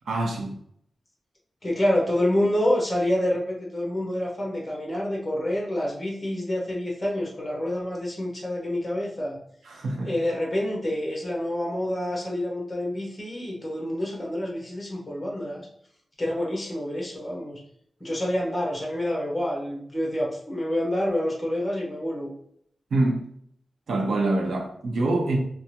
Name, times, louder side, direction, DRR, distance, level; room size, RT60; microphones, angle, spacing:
voice 1, 0.1-0.5 9.6-10.2 22.9-23.3 23.9-25.4, right 2 dB, 85° right, 0.7 m, -25 dB
voice 2, 1.6-9.4 10.0-15.7 16.2-17.6 18.0-22.3, left 1 dB, 20° left, 0.9 m, -27 dB
3.4 x 2.1 x 2.8 m
wide cardioid pair, 130°, 0 cm